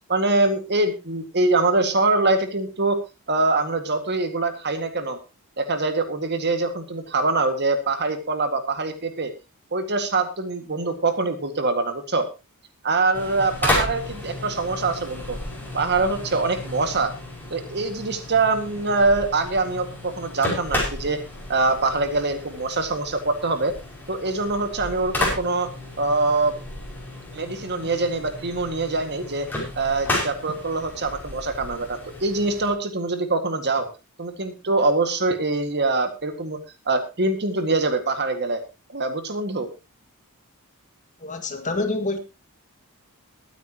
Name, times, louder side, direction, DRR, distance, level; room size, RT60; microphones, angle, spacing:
voice 1, 0.1-3.0 3.3-5.2 5.6-9.3 9.7-12.3 12.8-15.4 15.7-17.1 17.5-21.2 21.5-23.7 24.1-25.7 26.0-26.5 27.3-29.5 29.8-33.9 34.2-36.6 36.9-38.6 38.9-39.7, right 3 dB, 50° right, 2.0 m, -24 dB
sound 1, 13.1-32.7, left 1 dB, 10° left, 5.7 m, -32 dB
voice 2, 41.2-42.2, left 2 dB, 35° left, 2.0 m, -26 dB
21.5 x 9.4 x 3.0 m
head